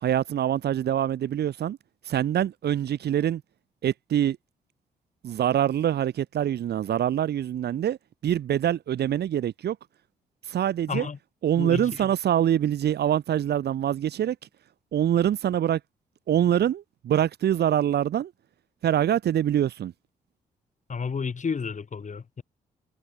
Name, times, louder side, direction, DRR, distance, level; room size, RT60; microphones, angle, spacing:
voice 1, 0.0-1.8 2.1-3.4 3.8-4.4 5.2-8.0 8.2-9.8 10.5-11.1 11.4-14.4 14.9-15.8 16.3-18.3 18.8-19.9, right 10 dB, 55° right, 2.0 m, -24 dB
voice 2, 10.9-11.2 11.6-12.1 20.9-22.4, left 5 dB, 40° left, 3.5 m, -31 dB
figure-of-eight pair, 40°, 20 cm